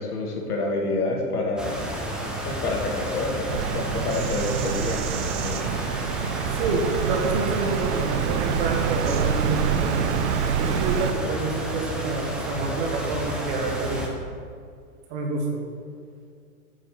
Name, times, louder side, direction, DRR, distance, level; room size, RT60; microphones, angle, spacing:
voice 1, 0.0-1.8 2.5-5.7, left 2 dB, 85° left, 0 dB, 2.1 m, -28 dB
sound 1, 1.6-14.1, equal, ahead, 0.6 m, -31 dB
Bird vocalization bird call bird song, 3.5-11.1, right 9 dB, 55° right, 0.5 m, -27 dB
voice 2, 6.5-10.1 10.6-14.1 15.1-15.6, right 3 dB, 40° right, 1 dB, 1.7 m, -28 dB
8.8 x 5.2 x 5.7 m, 2.1 s
hypercardioid pair, 135°, 44 cm